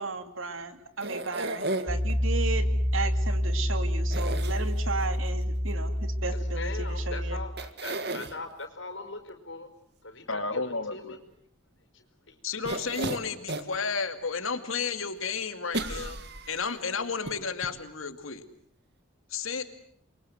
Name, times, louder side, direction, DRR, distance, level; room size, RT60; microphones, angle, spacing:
voice 1, 0.0-7.4, right 4 dB, 75° right, 9 dB, 2.5 m, -35 dB
sound 1, 1.0-2.1 4.1-5.0 7.0-7.1 7.6-8.4 12.6-13.8 14.3-14.4 15.7-16.7 17.3-17.4 17.6-17.7, right 2 dB, 50° right, 1.9 m, -33 dB
Piano, 1.9-7.5, equal, 10° right, 3.2 m, -28 dB
voice 2, 6.5-9.7 10.0-11.2 12.3-12.4, left 3 dB, 65° left, 7 dB, 4.8 m, -40 dB
voice 3, 10.3-11.2 12.4-16.2 16.5-18.4 19.3-19.6, left 5 dB, 85° left, 9 dB, 2.4 m, -32 dB
29.5 x 23.0 x 7.9 m, 0.63 s
head